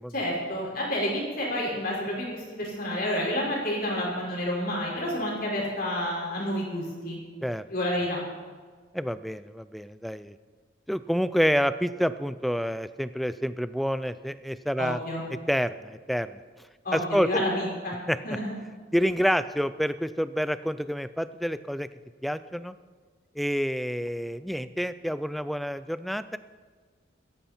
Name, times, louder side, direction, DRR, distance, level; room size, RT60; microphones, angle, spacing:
voice 1, 0.1-7.2 7.7-8.2 14.8-15.2 16.8-17.9 18.2-18.5, left 1 dB, 45° left, -3 dB, 5.2 m, -29 dB
voice 2, 8.9-10.4 10.9-15.0 15.5-16.4 16.9-17.3 18.1-18.2 18.9-21.9 22.2-22.8 23.4-26.4, equal, ahead, 14 dB, 0.4 m, -28 dB
16.5 x 14.0 x 4.4 m, 1.5 s
head